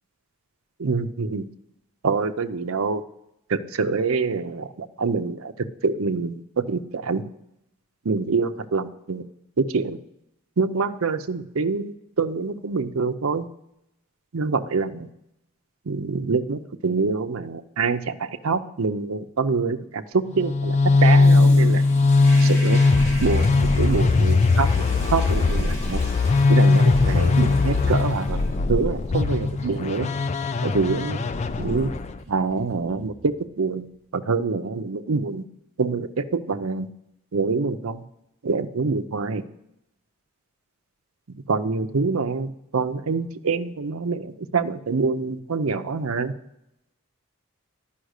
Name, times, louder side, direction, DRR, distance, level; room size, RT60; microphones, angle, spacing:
voice 1, 0.8-1.5 2.0-3.0 3.5-5.5 5.8-7.2 8.0-9.2 9.6-10.0 10.6-13.5 14.3-15.1 15.9-21.8 22.4-22.8 23.2-24.7 25.1-26.0 26.5-28.4 28.7-30.1 30.6-31.2 31.6-31.9 32.3-33.9 34.1-35.4 35.8-36.9 37.3-38.0 38.4-39.4 41.3-46.3, right 4 dB, 75° right, 8 dB, 0.6 m, -25 dB
sound 1, 20.3-32.2, left 3 dB, 30° left, 0.3 m, -19 dB
Toilet flush, 21.2-33.5, left 1 dB, 60° left, 3.8 m, -40 dB
11.5 x 5.7 x 6.4 m, 0.83 s
head